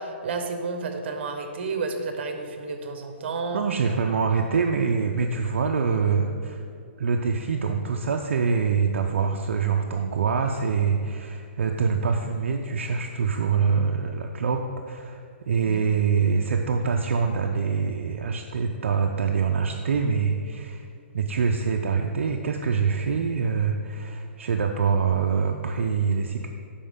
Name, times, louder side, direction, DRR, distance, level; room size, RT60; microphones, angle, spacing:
voice 1, 0.0-3.6 15.6-15.8, right 4 dB, 60° right, 6 dB, 0.9 m, -31 dB
voice 2, 3.5-6.6 7.0-20.9 21.1-26.5, right 5 dB, 80° right, 3 dB, 0.5 m, -25 dB
10.0 x 4.3 x 3.6 m, 2.4 s
hypercardioid pair, 140°, 7 cm